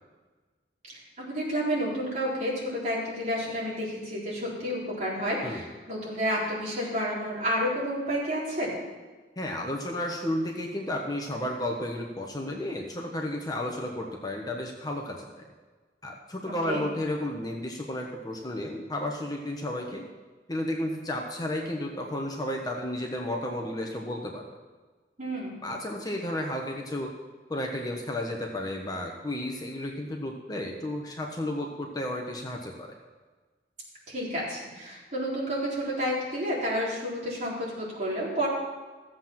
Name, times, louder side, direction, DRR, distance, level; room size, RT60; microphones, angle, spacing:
voice 1, 0.9-8.7 16.4-16.8 25.2-25.7 34.1-38.5, equal, 40° right, -6 dB, 4.1 m, -30 dB
voice 2, 9.4-15.4 16.0-20.1 20.5-24.6 25.6-27.1 27.5-32.9, left 1 dB, 20° left, 1 dB, 1.1 m, -32 dB
14.5 x 7.8 x 5.9 m, 1.3 s
head